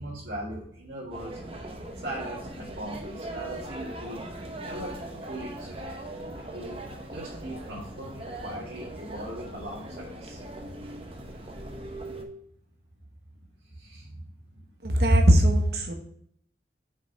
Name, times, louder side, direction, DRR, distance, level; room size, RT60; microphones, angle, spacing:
voice 1, 0.0-1.4 2.0-4.2 4.6-4.9 5.2-6.0 6.5-6.8 7.1-10.4 13.6-14.6, right 1 dB, 80° right, -6 dB, 2.1 m, -39 dB
sound 1, 1.1-12.2, right 1 dB, 30° right, 0.9 m, -40 dB
voice 2, 14.8-15.9, equal, 60° right, 4 dB, 1.3 m, -19 dB
6.1 x 5.4 x 5.7 m, 0.68 s
head